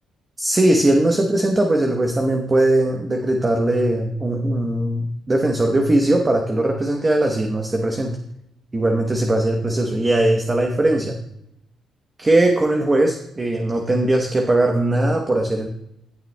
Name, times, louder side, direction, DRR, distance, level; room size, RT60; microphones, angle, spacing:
voice 1, 0.4-8.2 8.7-11.2 12.2-15.7, right 1 dB, 25° right, 2 dB, 0.9 m, -19 dB
15.5 x 6.7 x 2.2 m, 0.79 s
cardioid pair, 90°, 0 cm